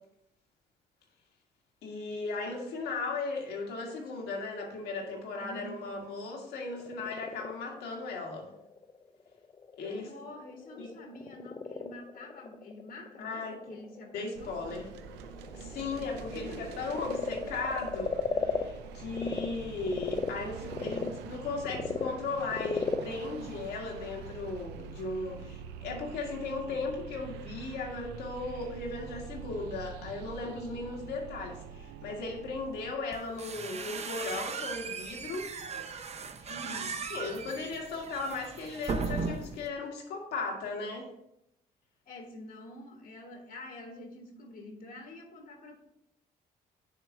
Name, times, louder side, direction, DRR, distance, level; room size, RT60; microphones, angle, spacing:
voice 1, 1.8-8.5 9.8-10.1 10.8-10.9 13.2-13.6 14.1-14.9 15.5-35.5 36.4-36.5 37.1-41.1, left 3 dB, 85° left, 0 dB, 1.6 m, -37 dB
voice 2, 5.4-5.7 9.8-14.9 16.2-16.9 36.5-37.0 42.0-45.7, left 1 dB, 65° left, 2 dB, 1.4 m, -47 dB
Frog, 6.7-19.5 19.8-24.5, left 5 dB, 30° left, 0.6 m, -37 dB
sound 1, 14.3-32.9, right 7 dB, 90° right, 0.5 m, -45 dB
sound 2, 33.1-39.7, right 5 dB, 40° right, 0.7 m, -37 dB
6.6 x 3.3 x 5.6 m, 0.79 s
supercardioid pair, 70°, 17 cm